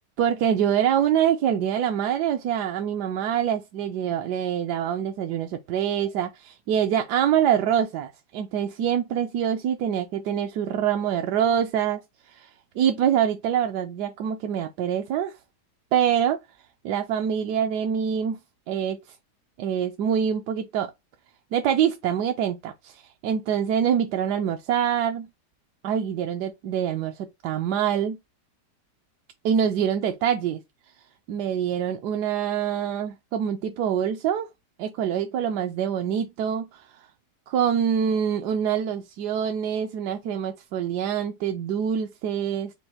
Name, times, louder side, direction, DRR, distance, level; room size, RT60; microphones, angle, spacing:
voice 1, 0.2-12.0 12.3-12.5 12.8-15.4 15.9-16.4 16.8-18.4 18.7-19.0 19.6-20.9 21.5-25.3 25.8-28.2 29.4-30.6 31.3-34.5 34.8-36.9 37.5-42.7, right 9 dB, 75° right, 1.1 m, -25 dB
5.2 x 2.2 x 4.2 m
omnidirectional pair, 1.8 m